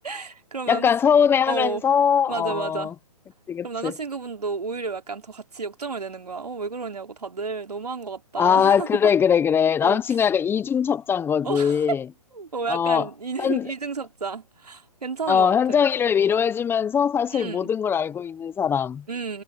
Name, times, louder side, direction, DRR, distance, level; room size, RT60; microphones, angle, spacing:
voice 1, 0.0-0.9 1.5-1.8 2.3-2.9 3.6-9.0 9.8-10.0 11.4-12.0 12.3-15.9 17.3-17.7 19.1-19.4, right 4 dB, 90° right, 3.3 m, -31 dB
voice 2, 0.7-2.9 3.5-3.9 8.4-12.0 12.7-13.1 13.4-13.7 15.3-19.0, left 7 dB, 10° left, 1.0 m, -21 dB
hypercardioid pair, 140°, 20 cm